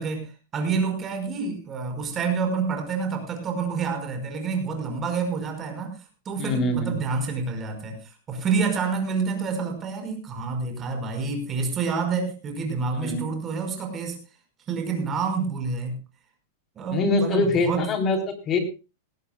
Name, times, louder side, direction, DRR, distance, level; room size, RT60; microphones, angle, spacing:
voice 1, 0.0-14.2 14.7-16.0 16.8-17.9, right 5 dB, 20° right, 5 dB, 5.3 m, -28 dB
voice 2, 6.4-6.9 12.9-13.2 16.9-18.6, left 3 dB, 25° left, 6 dB, 3.6 m, -24 dB
19.5 x 17.0 x 2.3 m, 0.30 s
supercardioid pair, 160°, 0 cm